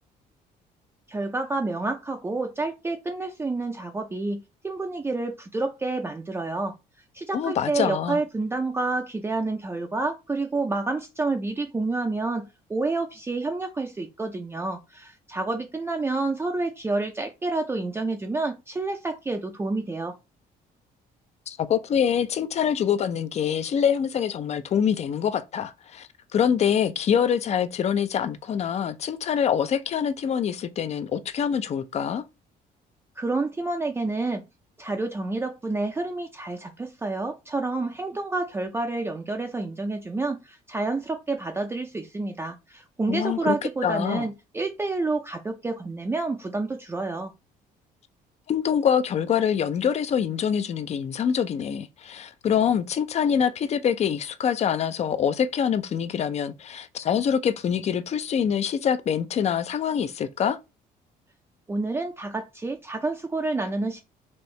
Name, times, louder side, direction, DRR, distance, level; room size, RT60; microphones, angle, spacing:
voice 1, 1.1-6.7 7.1-20.2 33.2-34.4 34.8-47.3 61.7-64.0, right 3 dB, 15° right, 0.4 m, -29 dB
voice 2, 7.3-8.2 21.5-32.2 43.1-43.6 43.8-44.3 48.5-60.6, left 8 dB, 40° left, 0.5 m, -25 dB
4.3 x 2.7 x 3.2 m
cardioid pair, 110°, 17 cm